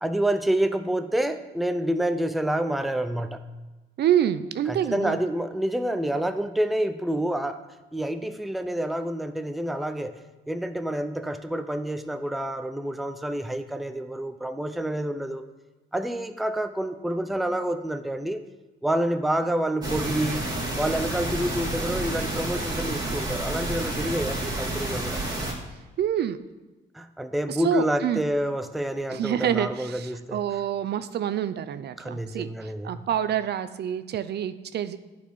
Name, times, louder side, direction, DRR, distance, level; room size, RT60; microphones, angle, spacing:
voice 1, 0.0-3.4 4.7-7.6 7.9-10.1 10.5-15.4 15.9-18.4 18.8-20.5 20.8-25.2 26.9-30.4 32.0-33.1, right 1 dB, ahead, 9 dB, 0.5 m, -28 dB
voice 2, 4.0-5.2 26.0-26.4 27.5-28.2 29.1-35.0, right 10 dB, 55° right, 12 dB, 0.4 m, -27 dB
sound 1, 19.8-25.5, right 1 dB, 20° right, 2.1 m, -30 dB
9.1 x 4.3 x 5.4 m, 1.2 s
cardioid pair, 90°, 20 cm